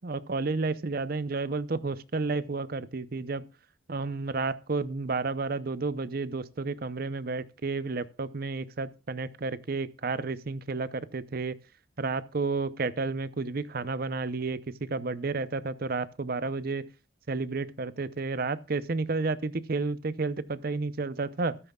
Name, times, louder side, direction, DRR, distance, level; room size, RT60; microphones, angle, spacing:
voice 1, 0.0-3.4 3.9-11.6 12.0-16.9 17.3-21.5, right 3 dB, 50° right, 0.6 m, -31 dB
13.5 x 13.0 x 2.3 m
head